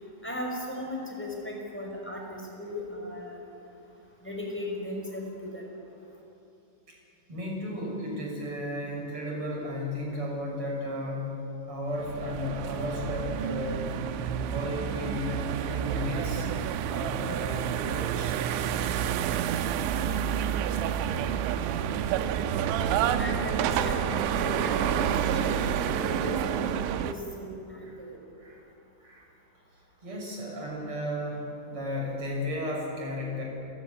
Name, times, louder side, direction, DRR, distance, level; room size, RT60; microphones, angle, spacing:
voice 1, 0.2-3.4 4.2-5.6 23.2-24.0 24.3-26.8 27.0-28.2, left 1 dB, ahead, -1 dB, 5.1 m, -36 dB
voice 2, 7.3-11.4 11.6-13.9 14.4-18.4 28.4-28.6 29.0-29.2 30.0-33.4, left 1 dB, 30° right, -1 dB, 6.7 m, -34 dB
sound 1, 12.0-27.1, right 9 dB, 85° right, 3.3 m, -29 dB
28.5 x 17.0 x 9.7 m, 2.8 s
omnidirectional pair, 5.3 m